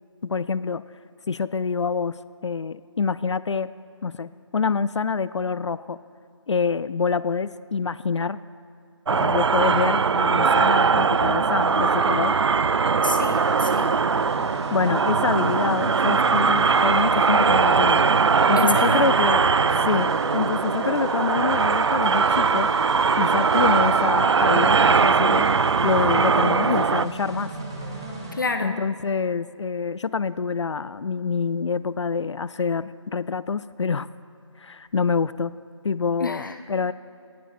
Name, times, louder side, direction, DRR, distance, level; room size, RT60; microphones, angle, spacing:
voice 1, 0.2-0.8 1.3-2.2 2.4-3.7 4.0-6.0 6.5-8.4 9.1-12.4 14.7-18.0 18.5-19.5 19.9-22.7 23.2-25.5 25.8-27.5 28.6-34.1 34.6-35.5 35.8-36.9, left 5 dB, 65° left, 16 dB, 0.4 m, -26 dB
sound 1, 9.1-27.1, right 5 dB, 60° right, 0.4 m, -20 dB
voice 2, 13.0-13.9 18.5-19.1 28.3-28.8 36.2-36.6, left 3 dB, 40° left, 7 dB, 0.7 m, -28 dB
sound 2, 13.3-28.4, right 2 dB, 10° right, 0.5 m, -37 dB
19.5 x 15.0 x 2.6 m, 2.6 s
figure-of-eight pair, 175°, 16 cm